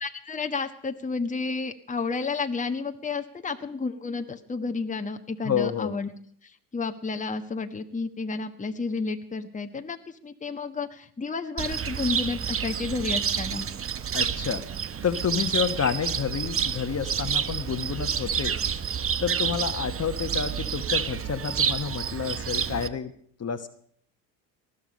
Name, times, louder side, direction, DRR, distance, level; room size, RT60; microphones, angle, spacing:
voice 1, 0.0-6.1 6.7-13.7, left 4 dB, 15° left, 5 dB, 1.3 m, -31 dB
voice 2, 5.4-5.9 14.1-14.6 15.0-18.5 19.2-23.1 23.4-23.7, left 7 dB, 35° left, 9 dB, 1.4 m, -29 dB
Cricket, 11.6-22.9, right 7 dB, 30° right, 0.9 m, -29 dB
19.5 x 12.5 x 5.4 m, 0.62 s
hypercardioid pair, 60°, 46 cm